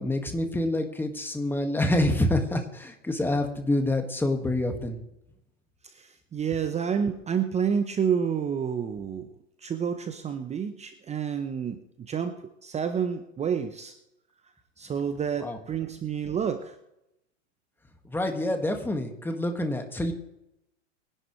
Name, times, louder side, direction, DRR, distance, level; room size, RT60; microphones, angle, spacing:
voice 1, 0.0-5.0 15.4-15.6 18.1-20.1, left 1 dB, 5° left, 5 dB, 1.9 m, -27 dB
voice 2, 5.8-9.3 9.6-13.9 14.8-16.8, right 7 dB, 15° right, 8 dB, 0.8 m, -29 dB
22.5 x 11.0 x 3.2 m, 0.85 s
hypercardioid pair, 115°, 38 cm